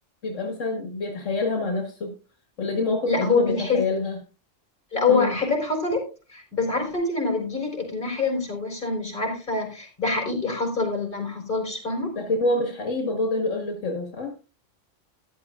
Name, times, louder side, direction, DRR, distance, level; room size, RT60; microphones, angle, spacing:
voice 1, 0.2-2.1 2.6-4.2 5.1-5.4 12.2-14.3, left 2 dB, 85° left, 2 dB, 2.1 m, -27 dB
voice 2, 3.1-3.8 4.9-6.0 6.3-12.1, left 3 dB, 45° left, 1 dB, 4.5 m, -25 dB
13.5 x 11.5 x 2.5 m, 0.32 s
omnidirectional pair, 1.2 m